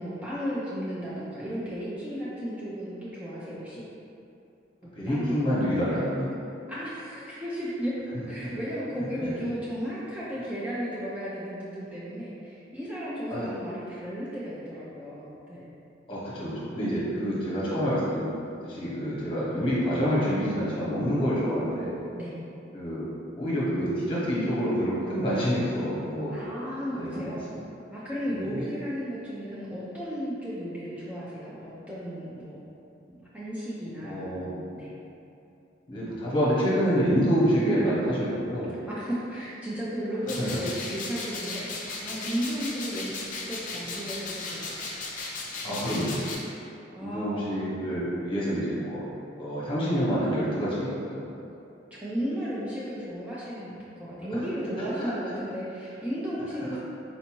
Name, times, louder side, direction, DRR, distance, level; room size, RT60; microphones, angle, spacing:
voice 1, 0.0-3.8 4.8-5.4 6.7-7.9 8.3-15.7 17.2-18.1 22.2-22.4 26.3-27.4 27.9-32.6 33.3-34.9 38.9-44.7 46.9-47.4 51.9-56.8, equal, 10° right, -9 dB, 0.4 m, -34 dB
voice 2, 4.9-6.3 8.4-8.5 9.1-9.3 13.3-13.5 16.1-18.3 18.6-22.0 22.7-23.1 23.3-26.4 26.9-27.6 28.3-28.7 34.0-34.5 35.9-38.7 40.4-40.5 45.6-46.2 47.0-49.0 49.3-51.3 54.8-55.1 56.6-56.8, equal, 30° left, -8 dB, 1.0 m, -27 dB
sound 1, 40.3-46.3, left 3 dB, 45° left, 0.5 m, -36 dB
4.3 x 2.6 x 2.9 m, 2.7 s
head